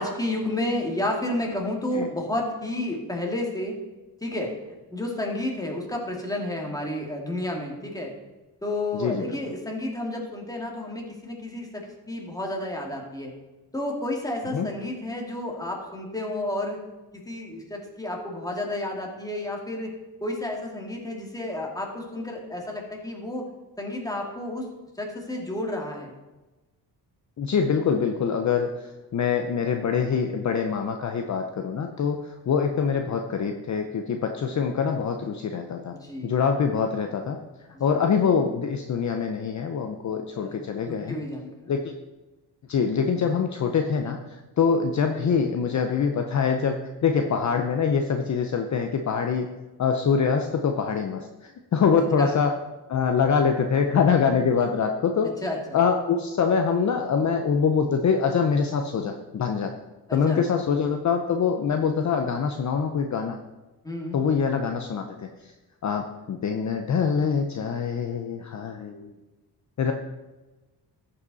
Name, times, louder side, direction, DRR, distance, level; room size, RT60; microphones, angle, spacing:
voice 1, 0.0-3.8 4.2-4.5 4.9-8.1 8.6-13.3 13.7-16.8 17.1-19.9 20.2-23.5 23.8-24.7 25.0-26.1 35.9-36.4 37.7-38.0 40.3-41.7 52.2-52.4 55.4-55.8 60.1-60.4 63.8-64.2, left 1 dB, 10° left, 0 dB, 2.1 m, -31 dB
voice 2, 8.9-9.4 14.5-14.7 27.4-35.9 36.2-37.4 37.8-41.2 41.7-42.0 42.7-49.5 49.8-52.5 52.9-55.3 55.7-59.7 60.1-63.4 64.1-65.5 65.8-69.1 69.8-69.9, left 6 dB, 45° left, 4 dB, 0.7 m, -24 dB
14.0 x 5.6 x 4.0 m, 1.1 s
cardioid pair, 105°, 40 cm